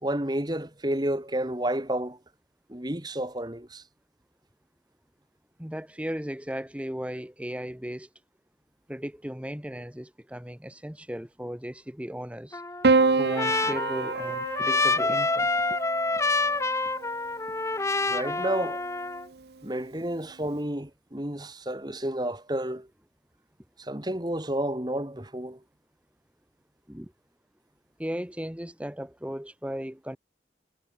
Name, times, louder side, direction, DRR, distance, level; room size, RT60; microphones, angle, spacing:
voice 1, 0.0-2.2 2.7-3.8 18.1-18.8 19.6-22.9 23.8-25.6, right 1 dB, 25° right, 2.3 m, -30 dB
voice 2, 5.6-8.1 8.9-12.6 13.2-15.8 18.3-18.4 26.9-27.1 28.0-30.2, equal, 5° right, 1.2 m, -36 dB
Trumpet, 12.5-19.3, left 3 dB, 15° left, 1.5 m, -27 dB
Piano, 12.8-17.3 18.5-19.2, right 3 dB, 65° right, 0.7 m, -27 dB
head